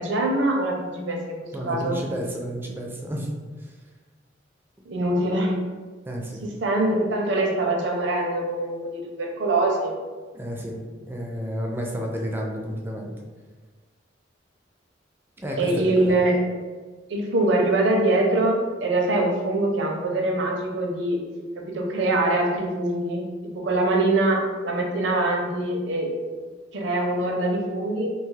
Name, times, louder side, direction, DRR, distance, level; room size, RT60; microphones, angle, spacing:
voice 1, 0.0-2.0 4.8-5.6 6.4-10.0 15.6-16.4 17.1-21.2 21.6-26.1 26.7-28.1, right 2 dB, 65° right, 1 dB, 0.5 m, -23 dB
voice 2, 1.5-3.3 3.6-3.7 6.1-6.5 10.3-10.8 11.1-13.1 15.4-16.1, equal, 10° right, 0 dB, 0.3 m, -31 dB
2.6 x 2.3 x 3.1 m, 1.4 s
head